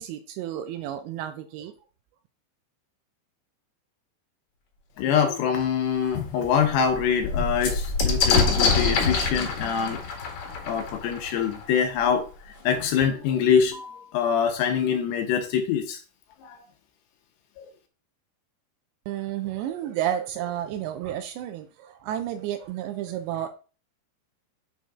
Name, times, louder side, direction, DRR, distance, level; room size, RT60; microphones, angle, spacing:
voice 1, 0.0-1.7 19.1-23.5, right 11 dB, 80° right, 2.6 m, -31 dB
voice 2, 5.0-10.0 10.7-13.8 14.1-16.0 16.4-16.6 17.6-17.7, left 7 dB, 75° left, 2.8 m, -24 dB
sound 1, 5.6-5.7 6.1-6.2 6.5-12.0 13.0-13.1 13.4-14.0, left 4 dB, 55° left, 2.4 m, -26 dB
7.5 x 4.0 x 4.7 m
omnidirectional pair, 5.4 m